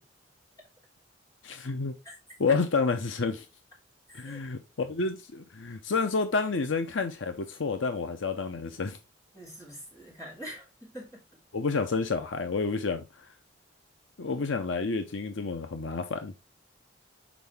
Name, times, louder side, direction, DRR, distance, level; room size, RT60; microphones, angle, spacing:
voice 1, 1.4-1.9 2.4-3.5 4.1-9.0 11.5-13.3 14.2-16.3, left 4 dB, 75° left, 0.7 m, -29 dB
voice 2, 4.1-4.4 9.3-11.2, equal, 15° left, 3.3 m, -44 dB
6.1 x 4.7 x 3.5 m
head